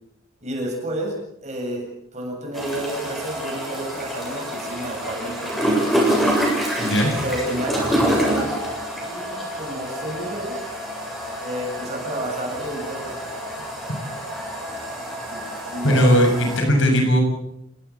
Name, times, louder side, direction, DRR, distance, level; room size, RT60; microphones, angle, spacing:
voice 1, 0.4-1.2 1.4-6.0 7.2-8.7 9.0-10.6 11.4-13.3 15.3-16.1, right 1 dB, 35° right, 0 dB, 8.0 m, -31 dB
sound 1, 2.5-16.6, right 1 dB, ahead, 8.0 m, -27 dB
voice 2, 6.8-7.1 15.8-17.2, equal, 65° left, 3 dB, 7.2 m, -18 dB
29.0 x 18.5 x 7.4 m, 0.75 s
head